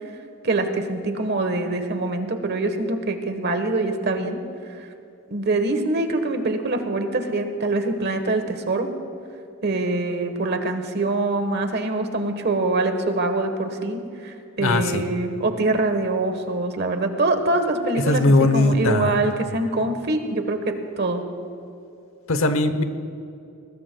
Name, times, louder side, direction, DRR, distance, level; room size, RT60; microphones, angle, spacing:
voice 1, 0.4-4.4 5.3-8.9 9.6-21.2, right 2 dB, 55° right, 7 dB, 1.2 m, -24 dB
voice 2, 14.6-15.0 18.0-19.2 22.3-22.8, left 2 dB, 75° left, 10 dB, 0.9 m, -19 dB
21.5 x 19.5 x 2.3 m, 2.6 s
head